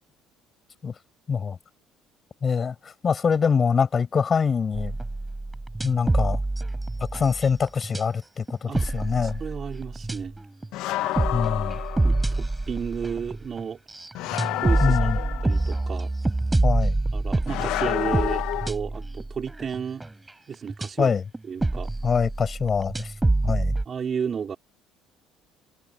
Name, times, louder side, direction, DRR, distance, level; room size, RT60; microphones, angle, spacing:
voice 1, 1.3-1.6 2.4-5.0 5.8-6.4 7.1-9.4 11.3-11.8 14.8-15.2 16.6-17.0 21.0-21.2 22.0-23.1 23.4-23.8, left 6 dB, 35° left, 6.6 m, -24 dB
sound 1, 4.7-8.0 8.5-20.9 21.3-23.8, right 2 dB, 15° right, 6.0 m, -27 dB
voice 2, 9.2-10.3 12.0-13.8 14.6-15.1 15.4-16.1 17.1-20.0 20.5-21.1 21.5-21.9 23.9-24.6, right 7 dB, 40° right, 4.7 m, -32 dB
sound 2, 10.7-12.4 14.1-15.8 17.5-18.7, left 16 dB, 75° left, 2.3 m, -29 dB
supercardioid pair, 90°, 0 cm